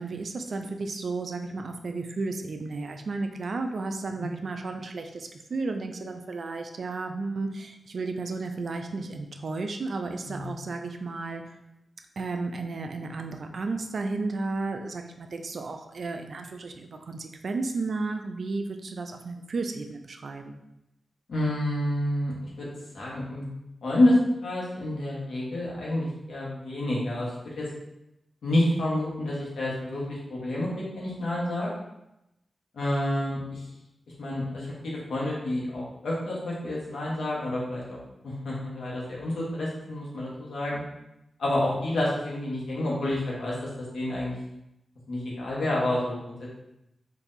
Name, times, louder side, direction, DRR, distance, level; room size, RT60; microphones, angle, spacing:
voice 1, 0.0-11.4 12.2-20.6, right 3 dB, 65° right, 5 dB, 0.4 m, -33 dB
voice 2, 21.3-22.7 22.9-23.4 23.8-24.2 24.4-27.7 28.4-31.7 32.7-33.7 34.2-38.0 38.2-40.8 41.4-43.5 43.9-44.4 45.1-46.5, left 1 dB, 90° left, -5 dB, 1.1 m, -29 dB
4.0 x 2.6 x 2.6 m, 0.87 s
cardioid pair, 75°, 0 cm